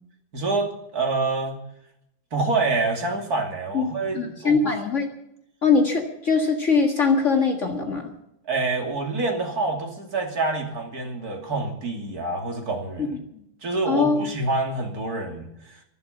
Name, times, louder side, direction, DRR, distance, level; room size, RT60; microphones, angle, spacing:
voice 1, 0.3-1.6 2.3-4.5 8.5-13.1 13.6-15.8, right 3 dB, 75° right, 2 dB, 3.2 m, -27 dB
voice 2, 3.7-5.1 5.6-8.1 13.0-13.4 13.9-14.3, left 4 dB, 50° left, 3 dB, 2.1 m, -22 dB
23.5 x 8.2 x 7.2 m, 0.80 s
omnidirectional pair, 1.6 m